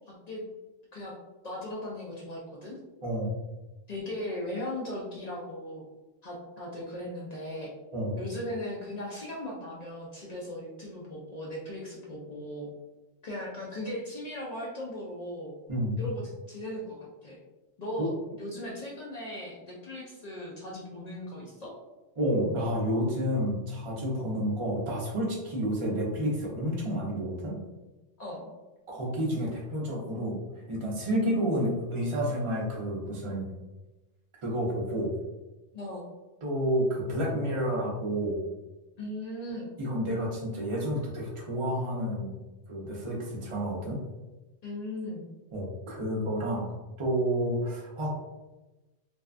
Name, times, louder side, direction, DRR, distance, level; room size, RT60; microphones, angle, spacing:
voice 1, 0.1-0.4 0.9-1.1 1.4-2.8 3.9-5.8 6.2-7.7 8.2-12.7 13.2-15.5 16.0-17.0 17.2-17.4 17.8-21.7 24.2-24.3 28.2-28.5 35.7-36.0 39.0-39.7 44.6-45.3, left 1 dB, 55° left, -4 dB, 0.4 m, -38 dB
voice 2, 3.0-3.3 7.9-8.2 15.7-16.0 18.0-18.1 22.2-27.6 28.9-30.4 30.7-33.5 34.4-35.2 36.4-38.4 39.8-42.3 42.7-44.0 45.5-46.7 47.0-48.1, equal, 35° right, -3 dB, 0.5 m, -30 dB
2.6 x 2.2 x 2.4 m, 1.1 s
omnidirectional pair, 1.2 m